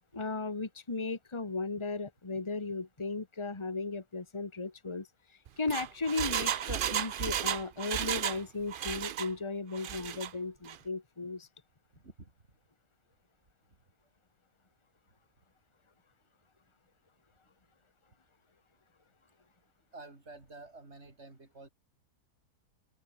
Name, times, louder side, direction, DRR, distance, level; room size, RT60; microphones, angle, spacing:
voice 1, 0.1-5.1 5.6-11.5, left 3 dB, 20° left, 1.8 m, -36 dB
Engine, 5.5-8.4 8.7-9.3 9.7-10.3 10.7-10.8, right 9 dB, 90° right, 0.4 m, -33 dB
voice 2, 12.0-12.3 13.7-13.8 19.9-21.7, right 3 dB, 40° right, 4.0 m, -50 dB
open air
omnidirectional pair, 1.7 m